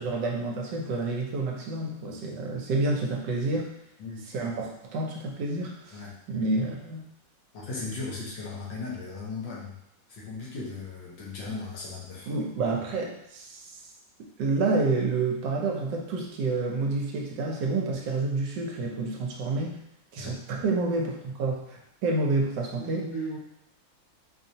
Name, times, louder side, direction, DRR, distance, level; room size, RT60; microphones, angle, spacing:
voice 1, 0.0-3.7 4.3-6.0 6.3-7.1 12.3-13.8 14.4-19.8 20.1-23.1, right 3 dB, 70° right, 0 dB, 1.2 m, -29 dB
voice 2, 7.5-9.8 10.1-12.3 20.2-20.3 22.8-23.4, left 2 dB, 75° left, -5 dB, 1.7 m, -37 dB
4.7 x 2.7 x 2.7 m, 0.80 s
omnidirectional pair, 2.1 m